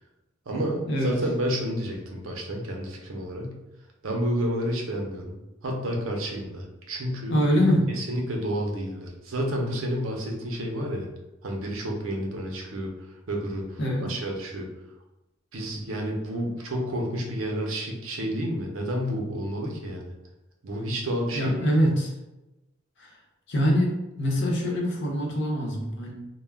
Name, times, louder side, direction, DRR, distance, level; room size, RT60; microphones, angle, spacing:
voice 1, 0.5-3.6 4.0-5.4 5.6-7.4 8.0-11.1 11.4-12.9 13.3-14.7 15.5-20.1 20.6-21.7, equal, 80° right, 0 dB, 0.6 m, -30 dB
voice 2, 7.3-7.9 13.8-14.1 21.3-22.1 23.0-23.2 23.5-26.1, equal, 60° left, -2 dB, 0.7 m, -24 dB
2.3 x 2.1 x 3.3 m, 0.97 s
head